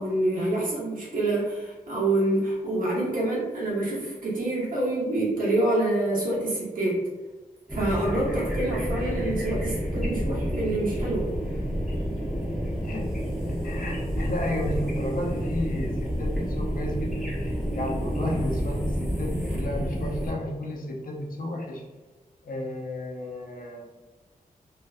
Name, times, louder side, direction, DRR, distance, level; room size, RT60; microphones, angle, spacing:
voice 1, 0.0-7.0 7.7-11.3, right 1 dB, 70° right, -6 dB, 0.9 m, -26 dB
sound 1, 7.7-20.3, equal, ahead, 0.6 m, -29 dB
voice 2, 12.8-21.8 22.4-23.9, left 1 dB, 70° left, -1 dB, 0.5 m, -33 dB
2.5 x 2.2 x 2.4 m, 1.2 s
wide cardioid pair, 155°, 15 cm